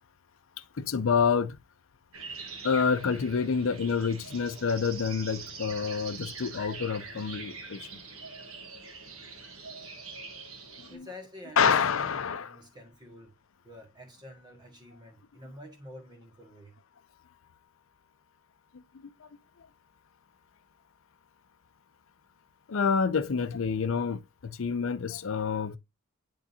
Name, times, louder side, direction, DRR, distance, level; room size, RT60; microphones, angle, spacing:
voice 1, 0.7-1.6 2.6-8.0 10.8-11.1 11.6-12.6 18.7-18.8 19.2-19.3 22.7-25.8, left 6 dB, 70° left, 0.5 m, -28 dB
sound 1, 2.1-11.0, right 4 dB, 85° right, 1.5 m, -44 dB
voice 2, 10.9-11.9 12.1-13.3 13.6-16.8, left 1 dB, 20° right, 1.7 m, -48 dB
9.9 x 3.8 x 2.7 m
head